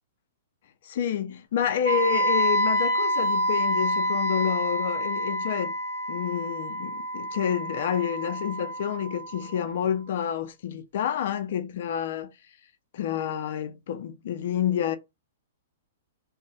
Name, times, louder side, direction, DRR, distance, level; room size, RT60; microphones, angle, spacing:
voice 1, 0.8-5.7 6.1-12.3 12.9-15.0, left 9 dB, 60° left, 0.4 m, -29 dB
Wind instrument woodwind instrument, 1.8-9.8, equal, 75° right, 1.0 m, -27 dB
2.1 x 2.0 x 3.6 m
hypercardioid pair, 115°, 0 cm